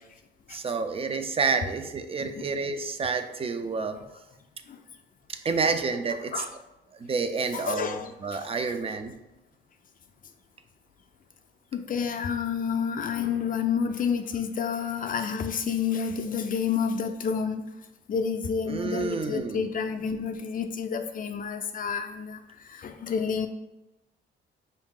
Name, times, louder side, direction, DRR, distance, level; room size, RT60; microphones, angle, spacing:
voice 1, 0.5-4.0 5.3-6.4 6.9-9.1 18.7-19.7, right 4 dB, 30° right, 8 dB, 0.4 m, -29 dB
voice 2, 7.5-8.4 11.7-17.7 18.1-23.5, left 6 dB, 45° left, 6 dB, 0.5 m, -29 dB
4.8 x 2.7 x 3.6 m, 0.97 s
cardioid pair, 90°, 20 cm